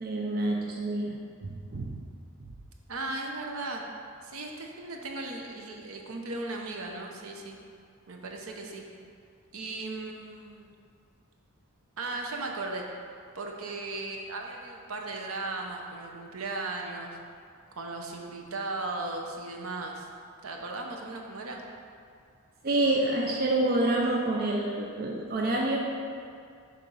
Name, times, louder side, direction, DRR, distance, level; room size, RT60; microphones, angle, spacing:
voice 1, 0.0-1.9 22.6-25.8, right 2 dB, 45° right, -1 dB, 0.5 m, -27 dB
voice 2, 2.9-3.9 4.2-7.6 8.1-8.8 9.5-10.7 12.0-12.9 13.3-17.2 17.8-20.1 20.4-21.6, right 2 dB, 75° right, 1 dB, 0.8 m, -37 dB
6.8 x 3.8 x 5.4 m, 2.3 s
head